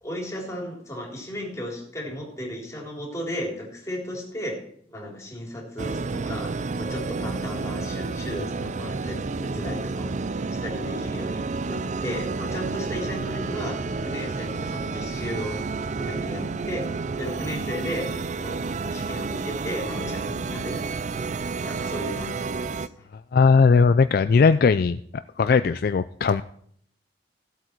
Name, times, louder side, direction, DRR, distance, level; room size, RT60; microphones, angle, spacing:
voice 1, 0.0-4.6 4.9-10.1 10.6-15.6 16.0-20.8 21.1-22.9, equal, 15° left, -3 dB, 3.7 m, -35 dB
sound 1, 5.8-22.9, right 4 dB, 40° right, 0.4 m, -30 dB
voice 2, 23.3-25.0 25.4-26.4, left 5 dB, 55° left, 12 dB, 0.4 m, -18 dB
16.0 x 8.1 x 4.6 m, 0.63 s
head